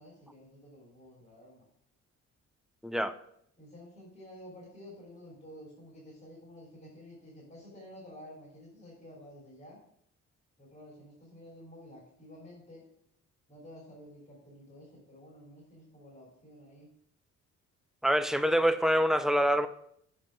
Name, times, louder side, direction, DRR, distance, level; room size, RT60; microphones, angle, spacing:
voice 1, 0.0-1.6 3.6-9.8 10.6-12.8 13.5-16.9, left 1 dB, 30° left, 3.3 m, -51 dB
voice 2, 2.8-3.1 18.0-19.7, equal, ahead, 0.6 m, -25 dB
7.1 x 5.0 x 6.0 m
cardioid pair, 90°, 30 cm